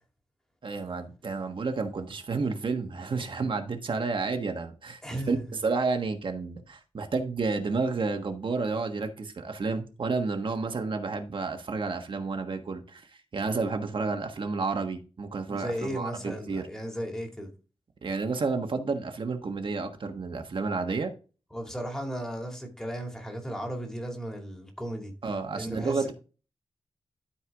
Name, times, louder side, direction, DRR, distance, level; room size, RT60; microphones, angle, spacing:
voice 1, 0.6-13.1 13.3-16.7 18.0-21.1 25.2-26.1, right 4 dB, 50° right, 1.4 m, -31 dB
voice 2, 5.0-5.4 15.4-17.5 21.5-25.1 25.5-26.1, right 1 dB, 5° left, 2.4 m, -35 dB
13.0 x 4.6 x 3.6 m
wide cardioid pair, 120°, 11 cm